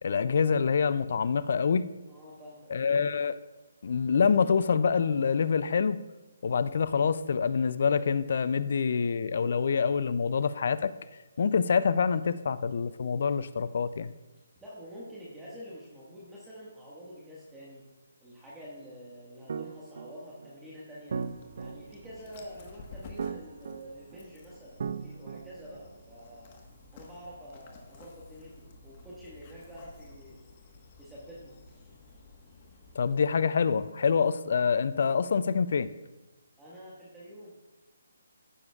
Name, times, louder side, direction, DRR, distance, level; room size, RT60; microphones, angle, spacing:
voice 1, 0.0-1.9 2.7-3.4 3.8-6.0 6.4-10.9 11.4-14.1 33.0-35.9, left 6 dB, 55° left, 16 dB, 0.4 m, -26 dB
voice 2, 2.1-2.7 14.5-17.8 18.2-21.2 21.5-26.6 26.9-30.4 31.0-31.9 36.6-37.5, equal, 10° right, -7 dB, 1.6 m, -47 dB
sound 1, 19.5-26.2, right 6 dB, 60° right, 0.4 m, -39 dB
Dog, 21.1-33.1, left 3 dB, 35° left, 1.3 m, -53 dB
15.0 x 6.9 x 2.4 m, 1.1 s
figure-of-eight pair, 150°, 0 cm